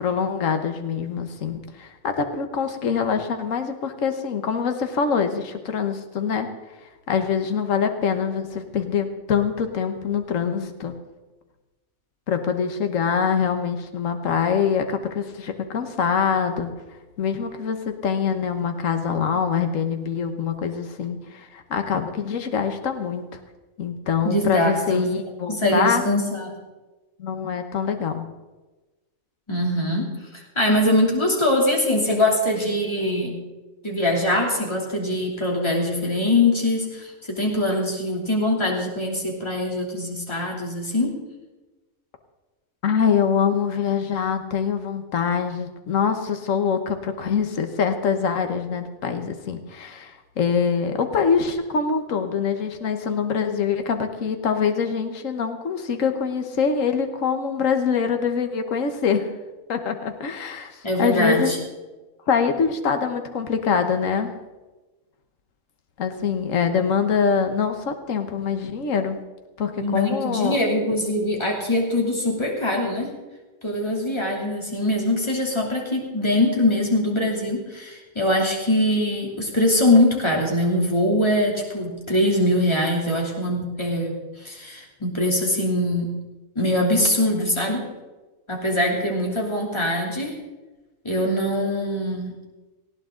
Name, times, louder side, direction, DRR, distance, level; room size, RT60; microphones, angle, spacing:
voice 1, 0.0-6.5 7.1-10.9 12.3-16.7 17.2-23.4 23.8-26.1 27.2-28.3 42.8-59.3 59.7-61.5 62.3-64.3 66.0-69.2 69.6-70.6, left 6 dB, 65° left, 7 dB, 1.6 m, -24 dB
voice 2, 24.2-25.0 25.5-26.6 29.5-33.4 33.8-41.2 60.8-61.6 69.8-73.1 73.6-86.1 86.5-87.9 88.5-90.3 91.0-92.3, left 1 dB, 20° left, -1 dB, 3.0 m, -22 dB
19.0 x 15.5 x 3.9 m, 1.2 s
omnidirectional pair, 1.5 m